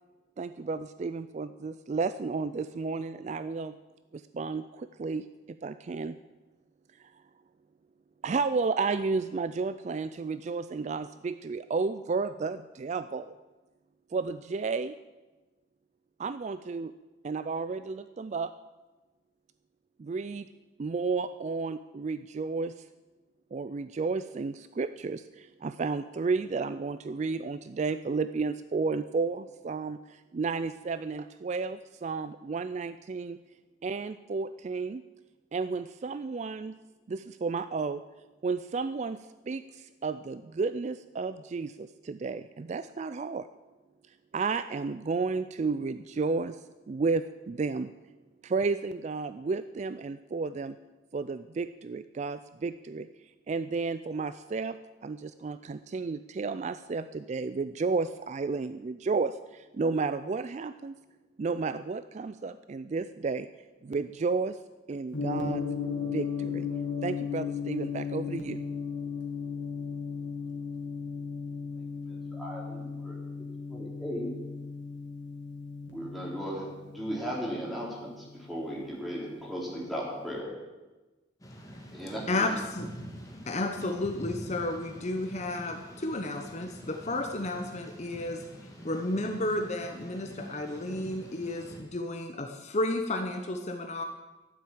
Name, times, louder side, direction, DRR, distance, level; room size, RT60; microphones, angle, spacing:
voice 1, 0.4-3.7 4.1-6.2 8.2-13.3 14.1-14.9 16.2-16.9 17.2-18.5 20.0-20.5 20.8-22.8 23.5-33.4 33.8-35.0 35.5-36.7 37.1-38.0 38.4-43.5 44.3-46.6 46.9-47.9 48.4-50.8 51.1-53.1 53.5-61.0 61.4-63.5 63.8-64.6 64.9-65.6 66.0-66.7 67.0-68.6, right 4 dB, 40° right, 13 dB, 0.3 m, -32 dB
Gong, 65.1-79.3, left 5 dB, 85° left, 2.1 m, -36 dB
voice 2, 72.1-73.2 73.7-74.3 75.9-76.7 76.9-80.5 81.9-82.5, equal, ahead, -4 dB, 3.7 m, -36 dB
Thunder / Rain, 81.4-91.8, equal, 20° left, 2.2 m, -46 dB
voice 3, 82.3-82.9 83.5-88.4 88.8-94.0, left 2 dB, 40° left, 5 dB, 0.9 m, -32 dB
12.5 x 7.5 x 8.9 m, 1.2 s
head